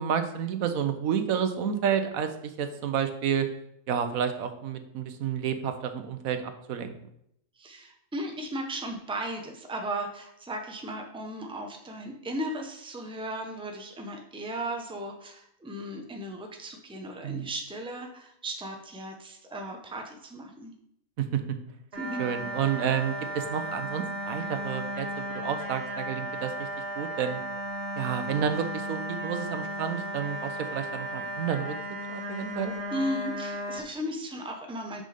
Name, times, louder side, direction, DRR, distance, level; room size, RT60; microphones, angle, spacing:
voice 1, 0.0-3.5 3.9-6.9 17.2-17.5 21.2-21.4 22.2-26.7 27.0-27.4 28.0-31.7 32.1-32.7, right 8 dB, 85° right, 8 dB, 1.2 m, -30 dB
voice 2, 7.6-20.7 22.0-22.2 32.9-35.0, right 1 dB, 5° right, 3 dB, 0.7 m, -36 dB
sound 1, 21.9-33.8, equal, 45° right, 2.0 m, -35 dB
6.4 x 5.3 x 5.1 m, 0.73 s
omnidirectional pair, 1.4 m